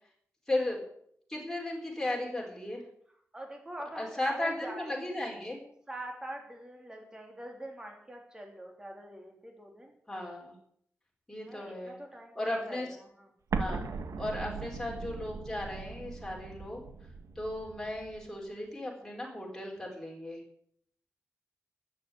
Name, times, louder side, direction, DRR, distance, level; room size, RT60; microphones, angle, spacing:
voice 1, 0.5-0.8 1.3-2.8 4.0-5.6 10.1-10.5 11.3-12.0 12.4-12.9 13.6-13.8 14.2-16.8 17.4-20.4, left 1 dB, 10° left, -2 dB, 4.3 m, -35 dB
voice 2, 3.3-5.3 5.9-9.9 11.5-13.3, right 1 dB, 15° right, 1 dB, 3.1 m, -44 dB
Explosion, 13.5-18.3, right 4 dB, 85° right, 1.5 m, -39 dB
13.0 x 8.1 x 9.7 m, 0.66 s
wide cardioid pair, 175°, 5 cm